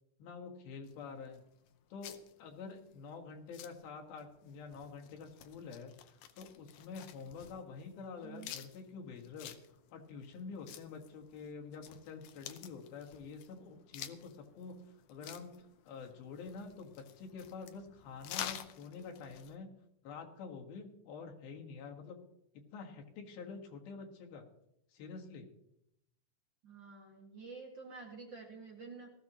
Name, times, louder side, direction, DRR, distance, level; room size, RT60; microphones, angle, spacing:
voice 1, 0.2-1.4 1.9-9.6 9.9-19.7 20.0-22.2 22.7-24.5 24.9-25.5, left 5 dB, 90° left, 2 dB, 3.5 m, -48 dB
sound 1, 0.8-19.6, left 11 dB, 75° left, 2.2 m, -50 dB
voice 2, 8.2-8.5 26.6-29.1, right 4 dB, 40° right, -1 dB, 2.1 m, -49 dB
19.0 x 14.5 x 3.0 m, 0.81 s
omnidirectional pair, 4.1 m